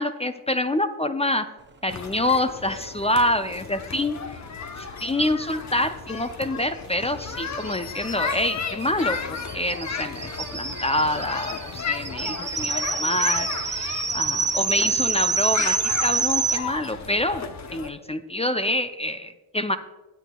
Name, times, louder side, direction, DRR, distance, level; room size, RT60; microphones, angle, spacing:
voice 1, 0.0-1.5 1.8-4.4 4.8-9.2 9.5-15.8 16.0-17.4 17.7-19.8, left 1 dB, 15° left, 10 dB, 0.4 m, -26 dB
sound 1, 1.9-17.9, left 5 dB, 35° left, 0.8 m, -34 dB
sound 2, 6.9-7.0 7.2-7.3 7.6-16.6, right 5 dB, 25° right, 0.7 m, -27 dB
16.5 x 8.1 x 2.3 m, 1.2 s
supercardioid pair, 75°, 49 cm